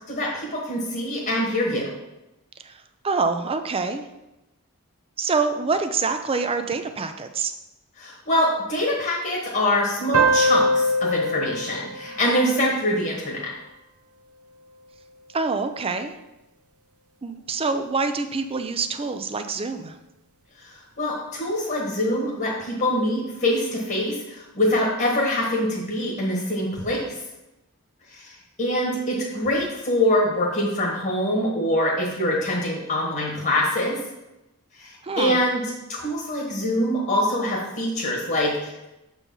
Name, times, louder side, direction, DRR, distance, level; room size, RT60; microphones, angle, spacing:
voice 1, 0.1-1.9 8.0-13.5 20.6-27.2 28.1-34.0 34.8-35.6 35.9-38.9, left 1 dB, 45° left, -2 dB, 1.5 m, -24 dB
voice 2, 2.6-4.0 5.2-7.5 15.3-16.1 17.2-20.0 35.0-35.4, right 4 dB, 25° right, 8 dB, 0.5 m, -26 dB
sound 1, 10.1-13.3, right 1 dB, 85° right, 0.7 m, -23 dB
6.8 x 4.6 x 5.5 m, 0.96 s
head